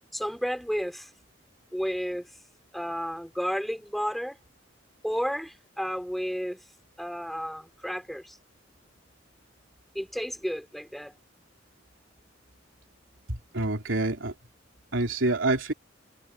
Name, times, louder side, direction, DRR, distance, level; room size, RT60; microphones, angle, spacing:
voice 1, 0.1-1.1 1.7-2.3 2.7-4.4 5.0-6.6 7.0-8.4 9.9-11.1, equal, ahead, 6.0 m, -32 dB
voice 2, 13.3-14.3 14.9-15.7, right 2 dB, 90° right, 3.3 m, -27 dB
head